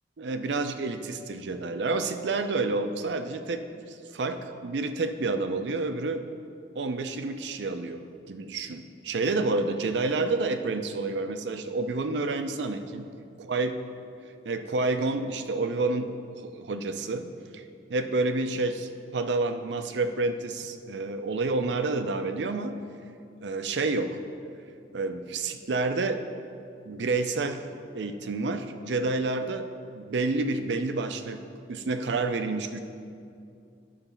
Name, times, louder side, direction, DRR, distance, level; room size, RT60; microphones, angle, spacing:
voice 1, 0.2-3.6 3.9-6.2 6.7-13.1 13.5-13.7 14.4-17.3 17.5-17.6 17.9-22.8 23.4-24.2 24.9-26.2 26.9-27.6 27.9-31.4 31.7-32.8, right 3 dB, 85° right, 8 dB, 0.5 m, -29 dB
11.0 x 4.0 x 5.7 m, 2.4 s
head